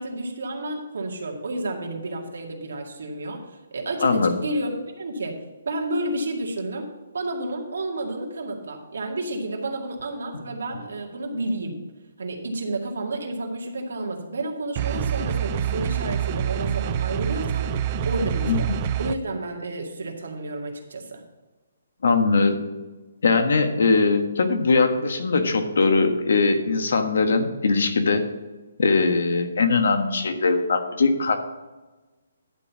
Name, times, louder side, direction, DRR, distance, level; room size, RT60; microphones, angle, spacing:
voice 1, 0.0-3.4 3.7-5.4 5.7-6.9 7.1-11.8 12.2-17.7 18.1-18.7 19.0-21.2, right 2 dB, 70° right, 1 dB, 2.1 m, -30 dB
voice 2, 4.0-4.3 18.5-18.6 22.0-22.6 23.2-28.2 28.8-31.4, left 4 dB, 65° left, 7 dB, 1.3 m, -21 dB
sound 1, 14.8-19.2, right 9 dB, 25° right, 0.3 m, -26 dB
11.0 x 4.7 x 7.0 m, 1.2 s
hypercardioid pair, 175°, 0 cm